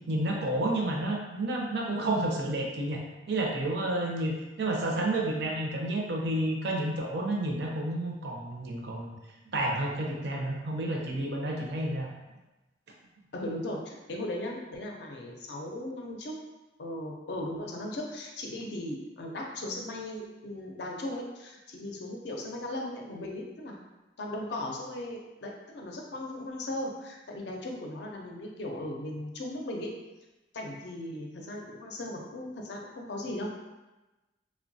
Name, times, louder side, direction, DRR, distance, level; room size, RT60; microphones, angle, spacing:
voice 1, 0.1-9.1 9.5-12.1, right 1 dB, 60° right, 0 dB, 0.5 m, -30 dB
voice 2, 13.3-16.4 16.8-23.8 24.2-29.9 30.5-33.5, left 1 dB, 65° left, 0 dB, 0.5 m, -37 dB
2.8 x 2.1 x 2.6 m, 1.1 s
head